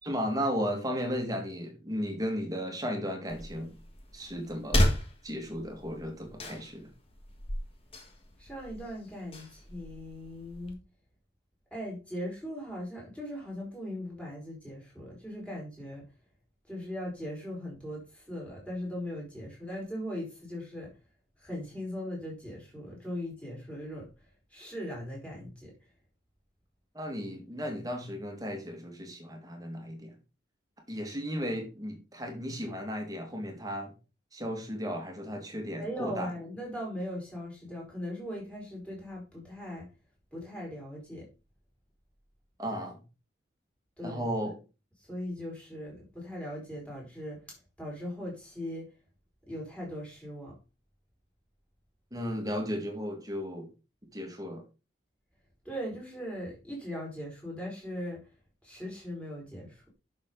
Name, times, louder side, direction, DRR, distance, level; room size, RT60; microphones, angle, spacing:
voice 1, 0.0-3.7 4.1-4.8 5.2-6.9 26.9-30.1 30.9-33.9 34.3-36.3 42.6-43.0 44.0-44.5 52.1-53.7 54.1-54.6, equal, 20° right, 4 dB, 2.0 m, -35 dB
sound 1, 3.3-10.7, left 1 dB, 30° left, 1.7 m, -34 dB
voice 2, 8.4-10.8 11.7-16.0 16.7-20.9 21.4-24.1 24.5-25.7 35.8-39.9 40.3-41.3 44.0-44.5 45.1-47.4 47.8-48.9 49.5-50.5 55.6-58.2 58.6-59.8, equal, 5° left, -3 dB, 4.6 m, -39 dB
10.5 x 6.4 x 3.9 m, 0.31 s
head